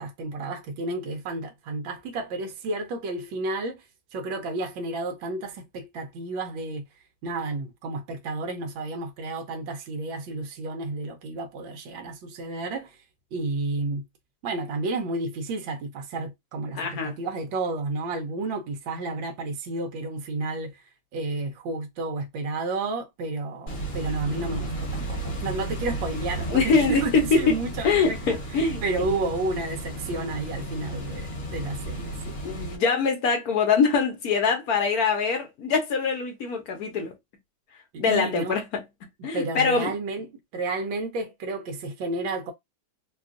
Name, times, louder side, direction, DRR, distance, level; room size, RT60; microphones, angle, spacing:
voice 1, 0.0-3.8 4.1-6.8 7.2-13.0 13.3-14.0 14.4-20.8 21.1-28.2 28.8-32.4 37.9-38.6 39.3-42.5, right 2 dB, 80° right, 1.4 m, -31 dB
voice 2, 16.7-17.1 26.5-27.6 27.8-28.8 32.4-37.1 38.0-38.8 39.2-39.9, left 5 dB, 60° left, 1.1 m, -23 dB
sound 1, 23.7-32.8, right 2 dB, 40° left, 1.1 m, -33 dB
3.4 x 2.3 x 2.4 m
omnidirectional pair, 2.1 m